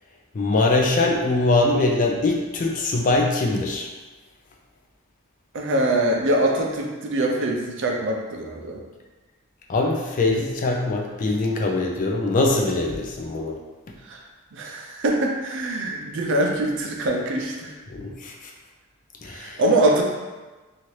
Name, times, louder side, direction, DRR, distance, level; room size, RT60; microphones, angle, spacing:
voice 1, 0.3-3.9 9.7-13.6 17.9-18.5 19.2-19.6, left 2 dB, 35° left, 0 dB, 0.3 m, -22 dB
voice 2, 5.5-8.8 14.1-14.2 14.5-17.7 19.3-20.0, right 1 dB, 55° right, 1 dB, 0.4 m, -23 dB
2.8 x 2.4 x 3.1 m, 1.2 s
head